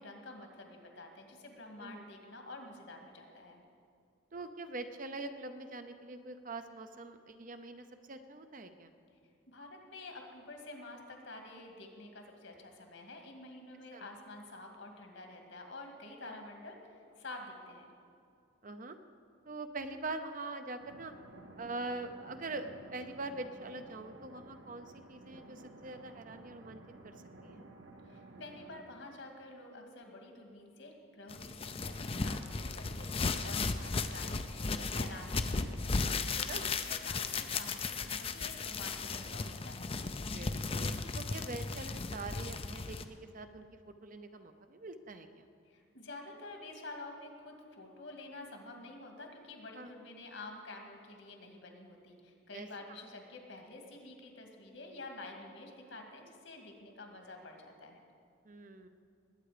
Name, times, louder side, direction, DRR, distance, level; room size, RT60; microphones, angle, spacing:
voice 1, 0.0-3.6 9.5-17.8 28.1-39.9 45.7-58.0, left 2 dB, 65° left, 3 dB, 2.1 m, -49 dB
voice 2, 4.3-8.9 13.9-14.1 16.3-16.4 18.6-19.0 19.5-21.1 21.6-27.1 27.4-27.6 36.2-36.7 40.2-45.4 49.8-49.9 52.5-52.7 58.4-58.9, right 2 dB, 40° right, 8 dB, 0.7 m, -44 dB
sound 1, 20.8-28.8, right 2 dB, 65° right, 1.2 m, -53 dB
sound 2, 31.3-43.0, left 4 dB, 30° left, 0.5 m, -36 dB
20.0 x 9.1 x 5.0 m, 2.4 s
head